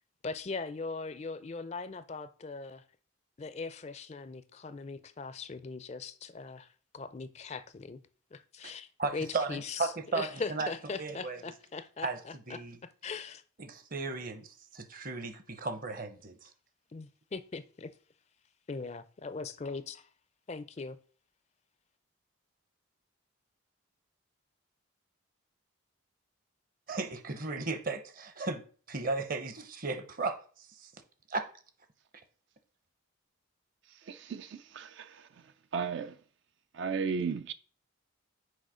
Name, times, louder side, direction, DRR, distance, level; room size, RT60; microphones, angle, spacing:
voice 1, 0.2-2.8 3.4-8.0 8.3-13.4 16.9-17.9 18.7-20.1 20.5-21.0, left 4 dB, 35° left, 0.4 m, -40 dB
voice 2, 9.0-10.7 11.0-11.4 12.0-12.2 12.5-12.8 13.6-16.5 26.9-28.6 28.9-30.9 31.3-31.5 32.1-32.2, right 3 dB, 45° right, 0.8 m, -35 dB
voice 3, 34.1-35.3 35.7-36.2 36.7-37.5, right 5 dB, 60° right, 0.4 m, -35 dB
6.4 x 4.9 x 4.9 m
head